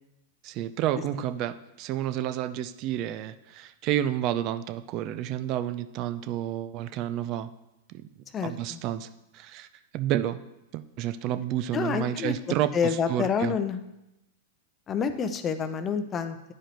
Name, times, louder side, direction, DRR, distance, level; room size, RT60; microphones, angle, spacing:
voice 1, 0.4-7.5 7.9-8.0 8.4-9.7 9.9-10.4 10.7-13.5, right 12 dB, 45° right, 11 dB, 0.4 m, -30 dB
voice 2, 8.3-8.8 11.7-12.3 12.7-13.8 14.9-16.5, left 6 dB, 25° left, 10 dB, 0.6 m, -28 dB
10.0 x 5.0 x 3.0 m, 0.90 s
hypercardioid pair, 105°, 0 cm